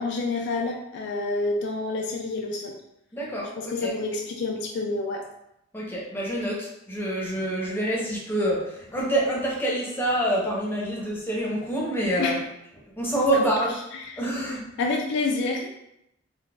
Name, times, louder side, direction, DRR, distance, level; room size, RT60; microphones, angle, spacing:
voice 1, 0.0-2.8 3.6-5.2 12.2-12.3 13.3-13.4 14.1-14.2 14.8-15.7, left 3 dB, 60° left, 2 dB, 0.3 m, -28 dB
voice 2, 3.1-4.0 5.7-12.5 13.0-13.7 14.2-14.6, right 1 dB, 10° left, -5 dB, 0.6 m, -26 dB
3.9 x 2.1 x 2.2 m, 0.81 s
head